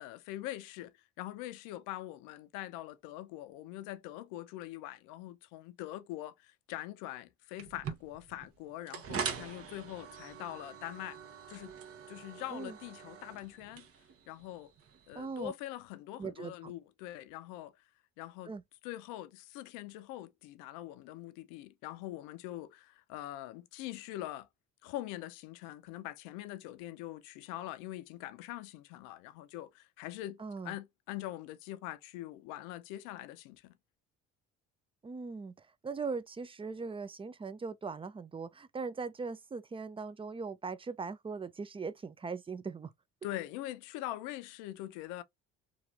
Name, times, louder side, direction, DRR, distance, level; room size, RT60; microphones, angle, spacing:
voice 1, 0.0-11.2 11.5-11.7 12.1-13.9 14.3-14.7 15.1-17.7 18.2-18.5 18.8-24.5 24.8-30.4 30.6-33.8 43.2-45.2, left 14 dB, 85° left, 0.6 m, -43 dB
sound 1, 7.6-15.5, right 7 dB, 50° right, 1.0 m, -44 dB
voice 2, 15.1-15.5 16.2-16.7 18.5-18.6 30.4-30.7 35.0-42.9, right 4 dB, 20° right, 0.5 m, -40 dB
3.0 x 2.4 x 2.7 m
supercardioid pair, 70°, 30 cm